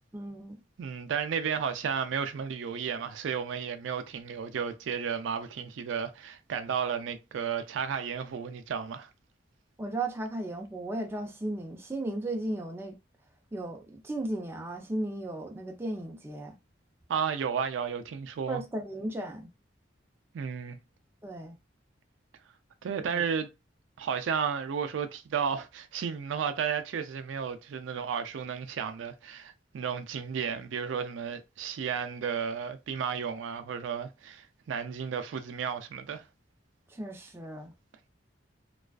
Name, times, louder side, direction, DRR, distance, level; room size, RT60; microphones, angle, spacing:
voice 1, 0.1-0.6 9.8-13.0 13.5-16.6 18.5-19.5 21.2-21.6 22.9-23.2 36.9-37.7, right 1 dB, 15° right, 0.4 m, -35 dB
voice 2, 0.8-9.1 17.1-18.6 20.3-20.8 22.8-23.5 24.0-36.2, right 7 dB, 80° right, 0.4 m, -33 dB
2.3 x 2.3 x 2.3 m
head